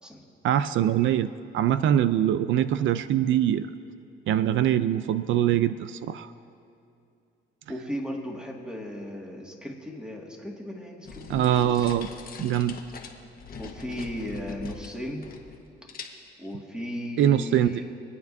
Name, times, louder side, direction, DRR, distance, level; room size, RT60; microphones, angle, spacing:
voice 1, 0.4-1.3 1.5-3.7 4.3-6.3 11.3-12.1 12.4-12.8 17.2-17.8, right 11 dB, 75° right, 12 dB, 0.4 m, -23 dB
voice 2, 7.7-11.9 13.6-15.3 16.4-17.9, equal, 5° right, -1 dB, 2.0 m, -36 dB
sound 1, 11.1-15.6 15.9-16.5, left 5 dB, 50° left, 1.4 m, -42 dB
24.5 x 9.3 x 2.7 m, 2.6 s
cardioid pair, 90°, 20 cm